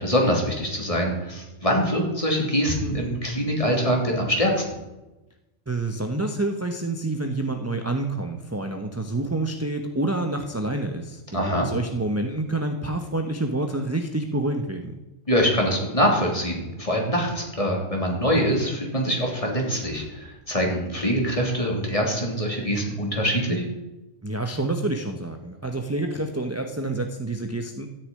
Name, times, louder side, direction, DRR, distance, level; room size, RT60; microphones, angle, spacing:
voice 1, 0.0-4.5 11.3-11.7 15.3-23.6, equal, 25° left, 0 dB, 3.3 m, -24 dB
voice 2, 5.7-14.9 24.2-27.9, right 2 dB, 15° right, 5 dB, 0.9 m, -28 dB
13.5 x 6.9 x 9.7 m, 1.0 s
omnidirectional pair, 1.3 m